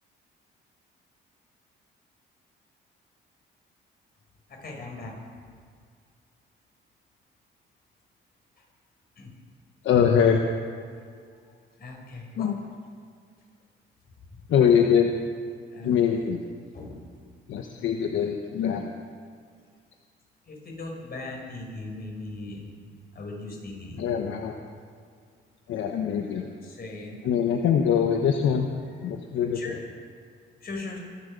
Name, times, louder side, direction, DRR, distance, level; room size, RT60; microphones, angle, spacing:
voice 1, 4.6-5.1 9.2-9.3 11.8-12.5 15.7-15.9 16.7-17.0 17.8-17.9 20.5-22.7 23.1-24.0 26.3-27.2 29.5-29.7 30.6-31.0, left 2 dB, 50° left, 0 dB, 5.7 m, -38 dB
voice 2, 9.8-10.5 12.3-12.6 14.5-15.1 15.8-16.4 17.5-18.9 23.9-24.5 25.7-26.5 27.2-28.7 29.0-29.8, left 7 dB, 75° left, 3 dB, 1.2 m, -23 dB
24.0 x 8.6 x 6.8 m, 2.1 s
cardioid pair, 90°, 20 cm